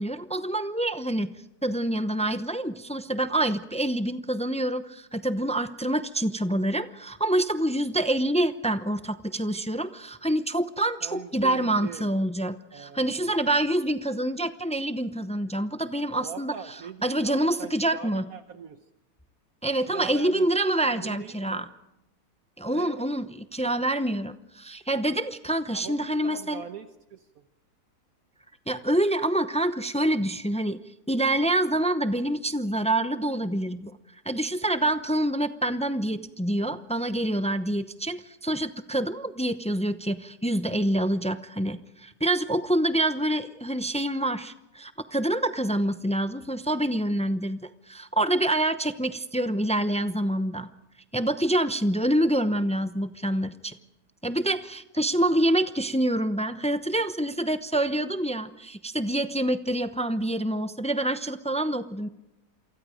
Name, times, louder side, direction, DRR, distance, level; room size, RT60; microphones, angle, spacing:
voice 1, 0.0-1.3 1.6-16.5 17.0-18.3 19.6-21.7 22.6-26.6 28.7-30.8 31.1-33.9 34.3-50.7 51.1-53.7 54.2-62.1, right 1 dB, 10° left, 11 dB, 0.3 m, -26 dB
voice 2, 11.0-12.1 12.7-13.4 16.1-18.8 19.8-21.7 22.7-23.1 25.7-27.4, right 7 dB, 65° right, 8 dB, 1.4 m, -42 dB
28.0 x 24.0 x 5.1 m, 0.91 s
omnidirectional pair, 1.7 m